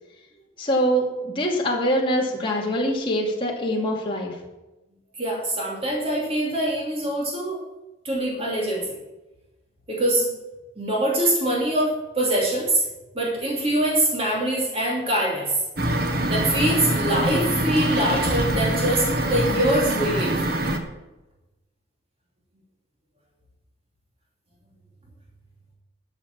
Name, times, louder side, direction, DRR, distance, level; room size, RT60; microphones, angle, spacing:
voice 1, 0.6-4.3, equal, 25° left, -2 dB, 2.6 m, -24 dB
voice 2, 5.2-7.6 8.0-8.8 9.9-10.3 10.8-12.8 13.1-15.5 16.3-20.3, right 1 dB, 30° right, -4 dB, 2.9 m, -23 dB
sound 1, 15.8-20.8, right 1 dB, 50° right, 1.4 m, -24 dB
12.5 x 6.7 x 7.4 m, 1.0 s
head